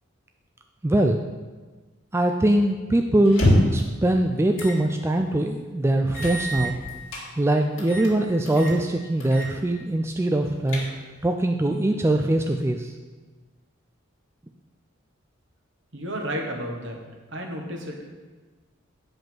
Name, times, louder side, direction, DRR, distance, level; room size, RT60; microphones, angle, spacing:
voice 1, 0.8-1.2 2.1-6.8 7.4-10.9 11.2-12.9, right 1 dB, 10° right, 3 dB, 0.3 m, -22 dB
sound 1, 3.3-3.9 4.6-4.8 5.2-5.3 6.1-7.3 7.8-8.1 8.5-8.8 9.2-9.5 9.8-9.9 10.4-11.2, equal, 70° left, 2.3 m, -25 dB
voice 2, 15.9-17.0 17.3-18.1, equal, 60° right, 1 dB, 1.4 m, -32 dB
8.8 x 5.2 x 6.1 m, 1.3 s
head